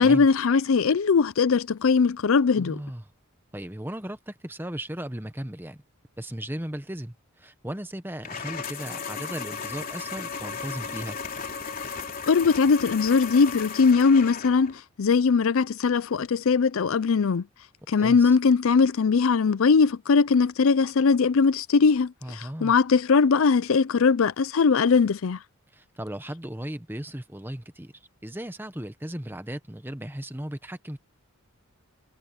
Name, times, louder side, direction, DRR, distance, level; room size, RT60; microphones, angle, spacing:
voice 1, 0.0-2.8 12.3-17.4 17.9-25.4, left 5 dB, 65° left, 0.5 m, -20 dB
voice 2, 2.6-3.0 3.5-5.8 6.2-11.2 18.0-18.4 22.2-22.7 25.7-27.9 28.2-31.0, right 1 dB, 10° right, 1.1 m, -36 dB
sound 1, 8.2-14.8, left 5 dB, 40° left, 3.4 m, -35 dB
head